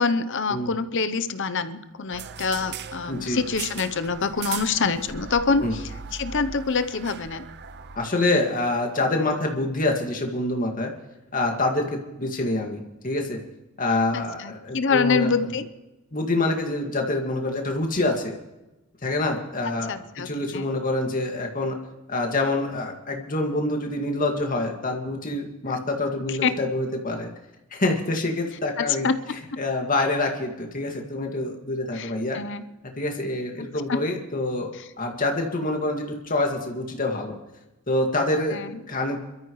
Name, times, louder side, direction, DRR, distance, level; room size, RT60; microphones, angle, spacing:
voice 1, 0.0-5.8 6.1-7.5 14.1-15.7 19.9-20.3 20.5-20.6 26.3-26.6 28.8-29.4 31.9-32.6 33.9-34.0 38.5-38.8, left 5 dB, 55° left, 12 dB, 0.8 m, -26 dB
sound 1, 2.1-8.0, right 7 dB, 50° right, 0.6 m, -38 dB
voice 2, 3.1-3.4 5.6-5.8 8.0-10.9 11.3-13.4 13.8-15.3 16.1-18.4 19.0-21.8 22.1-27.3 27.7-29.1 29.6-32.4 33.0-37.3 37.9-39.2, left 2 dB, 40° left, 2 dB, 2.0 m, -26 dB
26.5 x 13.5 x 3.2 m, 1.0 s
head